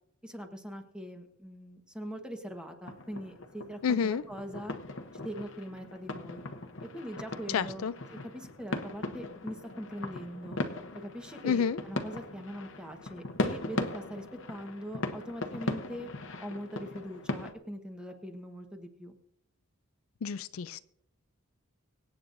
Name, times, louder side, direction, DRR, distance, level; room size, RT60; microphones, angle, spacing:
voice 1, 0.2-4.7 5.1-6.4 6.9-7.9 8.3-10.6 10.9-16.1 16.4-19.1, equal, 5° right, 4 dB, 1.2 m, -42 dB
sound 1, 2.8-17.5, left 2 dB, 60° left, 1.0 m, -39 dB
voice 2, 3.8-4.2 7.5-7.9 11.4-11.8 20.2-20.8, left 6 dB, 75° left, 14 dB, 0.4 m, -29 dB
24.5 x 8.6 x 2.6 m, 0.72 s
head